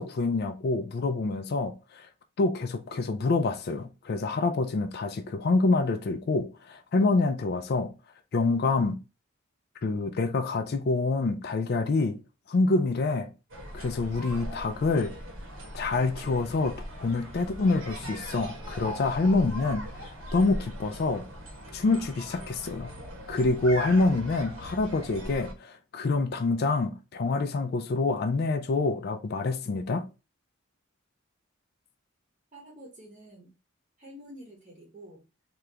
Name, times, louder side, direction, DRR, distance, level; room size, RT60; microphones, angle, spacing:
voice 1, 0.0-2.1 2.4-7.9 8.3-9.0 9.8-12.2 12.5-13.3 13.7-15.1 15.7-21.2 21.7-22.9 23.3-30.0, left 3 dB, 45° left, 0.3 m, -26 dB
sound 1, 13.5-25.5, equal, 70° right, 1.0 m, -40 dB
voice 2, 32.5-33.5 34.0-35.2, equal, 30° right, 0.8 m, -48 dB
2.8 x 2.4 x 3.2 m
head